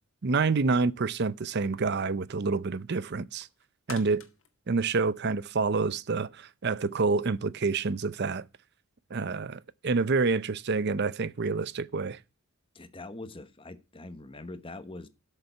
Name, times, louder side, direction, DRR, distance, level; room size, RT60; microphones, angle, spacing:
voice 1, 0.2-3.5 3.9-4.2 4.7-8.4 9.1-12.2, right 4 dB, 50° right, 0.6 m, -28 dB
sound 1, 3.0-5.8 6.2-6.3, left 7 dB, 60° left, 1.9 m, -50 dB
voice 2, 12.7-15.1, left 2 dB, 25° left, 1.1 m, -43 dB
12.5 x 6.8 x 5.5 m
head